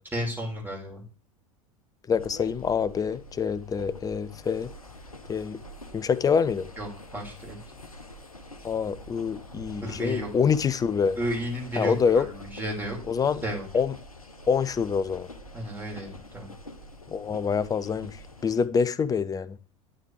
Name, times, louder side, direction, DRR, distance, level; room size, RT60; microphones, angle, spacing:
voice 1, 0.1-1.0 6.8-6.9 7.1-7.6 9.8-10.3 11.2-13.0 13.4-13.7 15.5-16.5, equal, 10° right, 5.1 m, -32 dB
sound 1, 2.1-18.7, left 1 dB, 90° left, 1.1 m, -45 dB
voice 2, 2.1-4.7 5.3-5.6 5.9-6.7 8.6-11.2 11.8-12.3 13.1-13.4 13.7-13.9 14.5-15.3 17.1-19.6, left 6 dB, 20° left, 0.6 m, -26 dB
11.0 x 9.1 x 3.4 m
figure-of-eight pair, 80°, 18 cm